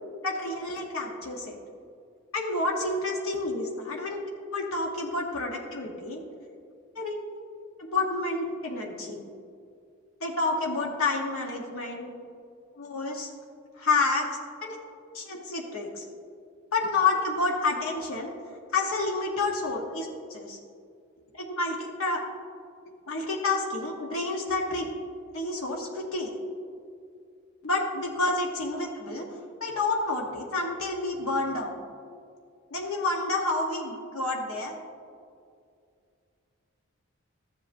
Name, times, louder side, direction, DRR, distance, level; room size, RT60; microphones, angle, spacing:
voice 1, 0.2-1.6 2.3-4.2 4.5-6.2 6.9-7.4 7.8-9.2 10.2-12.1 12.8-13.3 13.8-14.8 15.1-16.0 16.7-18.3 18.7-20.6 21.4-22.2 23.1-24.9 25.3-26.3 27.6-29.3 29.6-31.8 32.7-34.7, left 3 dB, 85° left, 0 dB, 1.0 m, -29 dB
13.5 x 7.6 x 2.6 m, 2.4 s
head